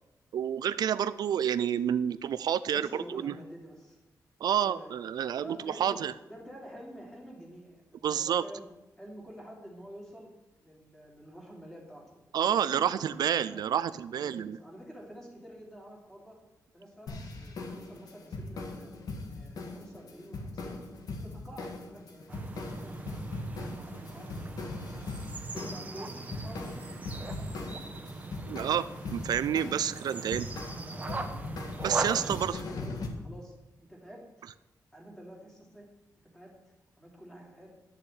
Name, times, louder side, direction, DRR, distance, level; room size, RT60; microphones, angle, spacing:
voice 1, 0.3-3.3 4.4-6.1 8.0-8.4 12.3-14.6 28.5-30.5 31.1-31.2 31.8-32.5, right 9 dB, 80° right, 14 dB, 0.5 m, -29 dB
voice 2, 2.7-4.0 4.6-4.9 5.4-6.0 6.3-8.6 9.0-10.3 10.6-13.6 14.1-16.4 16.7-18.9 19.3-20.8 21.1-23.3 23.6-25.1 25.5-27.8 30.7-31.3 32.0-34.4 34.9-35.9 36.2-37.7, equal, 10° left, -2 dB, 3.2 m, -49 dB
sound 1, 17.1-33.1, left 3 dB, 70° left, 2.0 m, -40 dB
sound 2, 22.3-32.5, right 3 dB, 25° right, 1.1 m, -40 dB
11.5 x 6.9 x 8.9 m, 1.0 s
wide cardioid pair, 175°, 7 cm